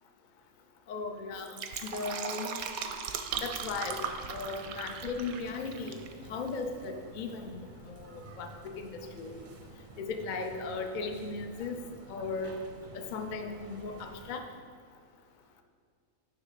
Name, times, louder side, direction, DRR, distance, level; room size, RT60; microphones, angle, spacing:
voice 1, 0.9-2.5 3.4-4.0 4.3-6.0 6.3-9.4 10.0-11.8 12.1-12.6 12.9-14.4, left 4 dB, 55° left, 5 dB, 0.5 m, -37 dB
Fill (with liquid), 1.3-6.1 6.4-6.5, right 7 dB, 80° right, 1.0 m, -38 dB
sound 1, 3.3-14.4, right 2 dB, 50° right, 0.6 m, -50 dB
9.6 x 3.4 x 5.7 m, 2.1 s
omnidirectional pair, 1.5 m